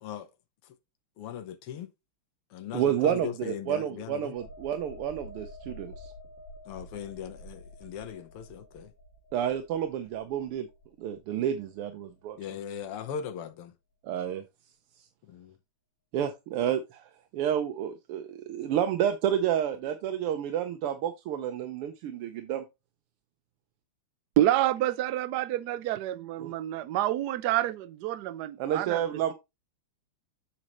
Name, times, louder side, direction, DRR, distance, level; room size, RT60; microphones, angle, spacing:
voice 1, 1.2-1.9 2.5-4.3 6.7-8.9 12.4-13.7 15.3-15.5, left 8 dB, 85° left, 1.9 m, -39 dB
voice 2, 2.7-6.1 9.3-10.7 11.0-12.4 14.0-14.4 16.1-22.6 26.4-26.5 28.6-29.3, right 10 dB, 85° right, 1.7 m, -30 dB
sound 1, 4.4-11.8 12.2-12.4, left 1 dB, 35° left, 2.5 m, -49 dB
voice 3, 24.4-29.0, right 14 dB, 70° right, 1.0 m, -28 dB
7.3 x 6.3 x 3.0 m
omnidirectional pair, 2.4 m